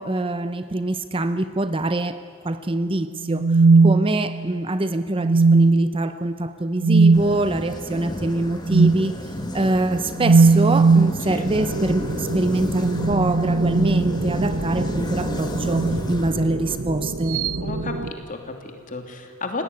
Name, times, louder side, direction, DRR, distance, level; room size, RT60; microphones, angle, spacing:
voice 1, 0.0-17.6, right 2 dB, 25° right, 11 dB, 0.7 m, -24 dB
sound 1, 3.3-4.6 5.2-6.0 6.8-7.3 8.7-9.0 10.2-11.2 12.7-14.5 15.6-16.1 17.3-17.6, right 4 dB, 85° right, 0.6 m, -18 dB
sound 2, 7.1-16.8, left 1 dB, 20° left, 2.2 m, -32 dB
sound 3, 11.4-18.1, right 2 dB, 65° right, 1.1 m, -29 dB
voice 2, 17.6-19.6, left 3 dB, 40° left, 4 dB, 2.9 m, -33 dB
30.0 x 17.0 x 9.5 m, 2.2 s
head